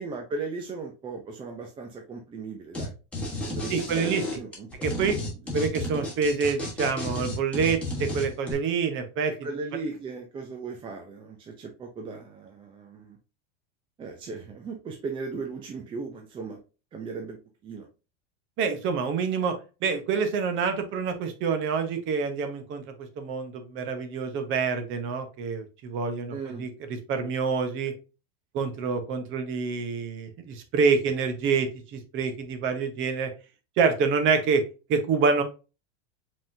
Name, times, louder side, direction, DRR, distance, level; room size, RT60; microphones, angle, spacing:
voice 1, 0.0-2.9 3.5-4.9 9.3-13.2 14.0-16.6 16.9-17.4 17.6-17.9 26.3-26.7, right 4 dB, 15° right, 2 dB, 0.4 m, -37 dB
sound 1, 2.7-2.9 3.1-8.5, left 2 dB, 5° left, 1.4 m, -32 dB
voice 2, 3.7-4.2 4.8-5.2 5.5-9.3 18.6-19.6 19.8-22.8 23.2-26.7 27.1-27.9 28.5-33.3 33.8-34.6 34.9-35.4, right 5 dB, 35° right, 8 dB, 0.9 m, -26 dB
5.0 x 3.7 x 2.7 m, 0.31 s
supercardioid pair, 150°, 36 cm